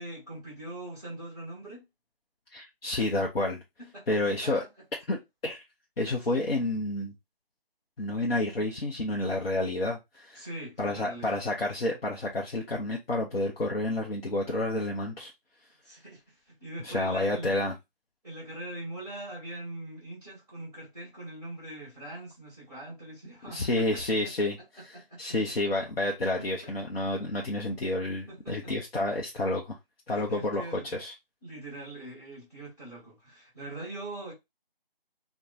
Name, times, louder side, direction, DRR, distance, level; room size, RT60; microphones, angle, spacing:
voice 1, 0.0-1.8 3.8-4.7 10.3-11.4 15.8-16.2 16.6-17.5 18.2-24.5 24.8-25.4 25.6-25.7 26.3-26.7 28.3-28.7 30.1-30.9 31.4-34.3, right 1 dB, 5° left, 1.6 m, -42 dB
voice 2, 2.5-3.6 4.1-4.6 5.1-5.6 6.0-7.1 8.0-10.5 10.8-15.3 16.8-17.8 23.5-24.6 24.8-29.8 30.1-31.1, left 2 dB, 80° left, 0.7 m, -30 dB
3.0 x 2.2 x 2.7 m
figure-of-eight pair, 170°, 29 cm